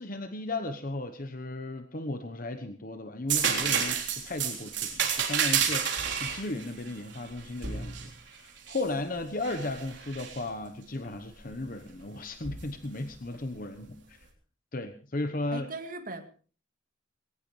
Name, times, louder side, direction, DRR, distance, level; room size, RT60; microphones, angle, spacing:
voice 1, 0.0-14.2 14.7-15.7, left 2 dB, 45° left, 1.1 m, -35 dB
sound 1, 3.3-8.9 9.4-10.4 12.4-12.6, right 7 dB, 70° right, 3.7 m, -30 dB
voice 2, 15.5-16.2, right 2 dB, 45° right, 2.2 m, -38 dB
20.5 x 18.0 x 3.3 m
head